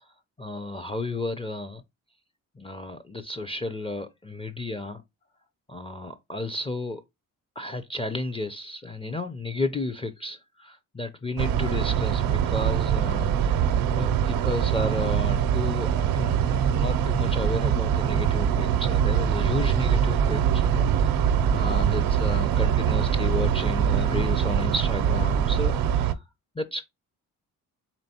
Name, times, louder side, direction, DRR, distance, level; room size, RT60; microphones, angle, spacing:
voice 1, 0.4-1.8 2.6-5.0 5.7-7.0 7.6-21.2 21.5-26.2 26.6-26.8, left 2 dB, 15° left, 0.5 m, -33 dB
sound 1, 11.4-26.1, right 9 dB, 85° right, 0.6 m, -23 dB
4.3 x 3.4 x 2.8 m
cardioid pair, 90°, 35 cm